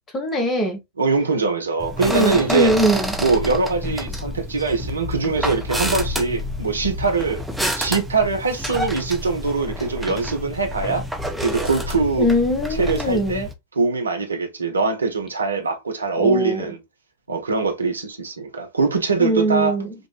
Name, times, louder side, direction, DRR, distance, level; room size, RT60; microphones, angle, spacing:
voice 1, 0.1-0.8 2.1-3.1 12.2-13.5 16.2-16.7 19.2-19.9, equal, 20° left, 1.4 m, -21 dB
voice 2, 1.0-2.7 3.2-7.4 7.8-11.0 11.4-12.3 12.8-13.5 13.7-16.8 17.3-19.8, right 4 dB, 75° right, 0.9 m, -22 dB
sound 1, 1.8-13.5, equal, ahead, 0.7 m, -28 dB
5.3 x 2.5 x 2.4 m
figure-of-eight pair, 90°, 0 cm